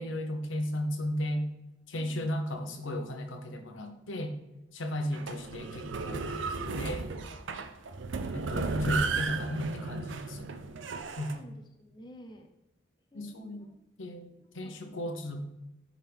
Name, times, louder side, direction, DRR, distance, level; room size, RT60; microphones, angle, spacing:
voice 1, 0.0-1.5 1.9-4.3 4.7-6.4 6.7-7.0 8.3-10.5 11.1-11.3 13.1-13.7 14.0-15.4, left 1 dB, 90° left, 5 dB, 1.0 m, -35 dB
voice 2, 1.9-2.4 10.6-12.5 13.1-13.8 14.4-15.1, equal, 25° left, 4 dB, 0.6 m, -54 dB
sound 1, 5.1-11.4, right 4 dB, 75° right, 0.6 m, -34 dB
10.5 x 3.7 x 3.5 m, 0.96 s
head